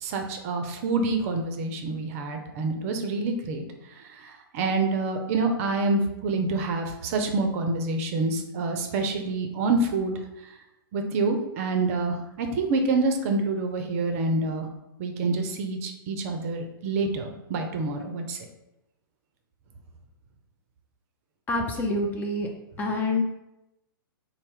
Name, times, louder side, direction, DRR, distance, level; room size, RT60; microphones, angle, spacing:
voice 1, 0.0-3.7 3.9-10.1 10.5-10.6 10.9-14.7 15.0-18.4, right 3 dB, 40° right, 4 dB, 0.5 m, -27 dB
voice 2, 21.5-22.5 22.8-23.2, left 2 dB, 15° left, 1 dB, 0.3 m, -26 dB
4.1 x 2.0 x 3.4 m, 0.90 s
figure-of-eight pair, 115°, 12 cm